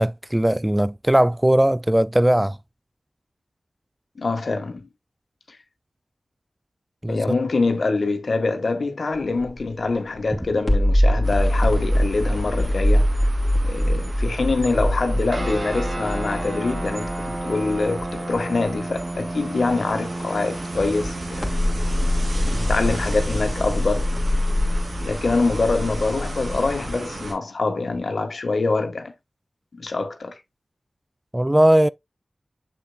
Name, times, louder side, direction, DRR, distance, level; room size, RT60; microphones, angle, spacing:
voice 1, 0.0-2.6 7.0-7.2 31.3-31.9, right 1 dB, 15° right, 0.3 m, -18 dB
voice 2, 4.1-4.9 5.5-5.6 7.1-13.2 13.7-21.6 22.3-24.1 25.0-29.1 29.7-30.3, left 3 dB, 75° left, 1.6 m, -25 dB
sound 1, 9.1-9.7 10.1-18.4 18.7-18.8 21.0-27.0, left 1 dB, 20° left, 2.5 m, -23 dB
sound 2, 11.2-27.3, right 2 dB, 80° right, 2.8 m, -36 dB
sound 3, 15.3-27.1, right 1 dB, 45° right, 1.7 m, -34 dB
7.0 x 6.9 x 2.3 m
wide cardioid pair, 55°, 0 cm